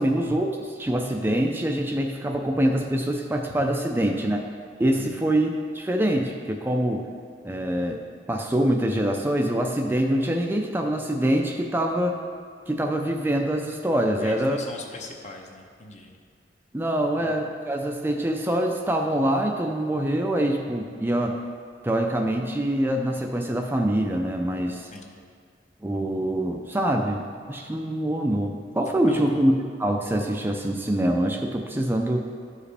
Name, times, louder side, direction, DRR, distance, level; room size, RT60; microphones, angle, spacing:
voice 1, 0.0-4.4 4.8-7.0 7.4-8.0 8.3-12.2 12.7-14.6 16.7-21.4 21.8-24.9 25.8-29.5 29.8-32.3, right 1 dB, 10° right, 2 dB, 0.4 m, -25 dB
voice 2, 4.9-5.3 14.2-16.2 17.1-17.3 24.9-25.3 28.9-29.4, left 2 dB, 40° left, 2 dB, 0.8 m, -41 dB
12.0 x 4.9 x 3.4 m, 2.1 s
head